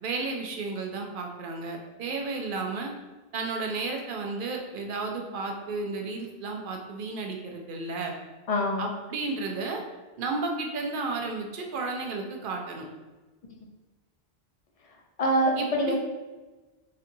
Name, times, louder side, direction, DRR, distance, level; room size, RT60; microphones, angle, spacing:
voice 1, 0.0-2.9 3.3-8.1 8.8-9.8 10.2-12.9 15.6-16.0, right 3 dB, 60° right, 2 dB, 0.7 m, -33 dB
voice 2, 8.5-8.9 15.2-16.0, equal, 50° left, 0 dB, 0.5 m, -24 dB
3.9 x 2.6 x 2.5 m, 1.2 s
omnidirectional pair, 1.1 m